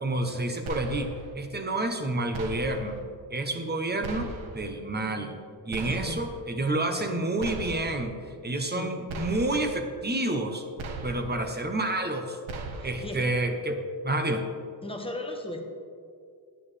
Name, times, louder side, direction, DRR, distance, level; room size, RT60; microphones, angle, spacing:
voice 1, 0.0-3.0 3.3-5.4 5.6-8.2 8.4-10.6 11.0-12.4 12.8-14.4, right 2 dB, 20° right, 5 dB, 0.8 m, -29 dB
sound 1, 0.7-1.3 2.3-3.0 4.0-4.7 5.7-6.4 7.4-8.1 9.1-9.8 10.8-11.5 12.5-13.2, right 3 dB, 90° right, 1.0 m, -38 dB
voice 2, 5.8-6.2 6.9-7.2 8.5-9.0 12.7-13.3 14.8-15.6, left 2 dB, 10° left, 2 dB, 1.0 m, -37 dB
10.0 x 9.3 x 3.3 m, 2.3 s
wide cardioid pair, 125°, 46 cm